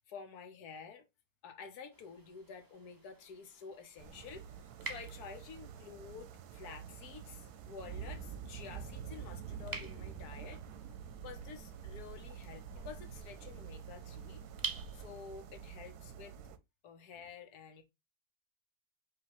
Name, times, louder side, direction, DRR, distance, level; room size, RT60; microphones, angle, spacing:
voice 1, 0.1-1.1 1.4-10.6 11.2-14.4 14.9-16.3 16.8-17.8, left 6 dB, 80° left, 1.4 m, -50 dB
sound 1, 1.9-15.4, right 3 dB, 30° right, 0.4 m, -50 dB
sound 2, 4.0-16.6, right 7 dB, 90° right, 1.1 m, -47 dB
4.9 x 2.9 x 2.9 m
omnidirectional pair, 1.6 m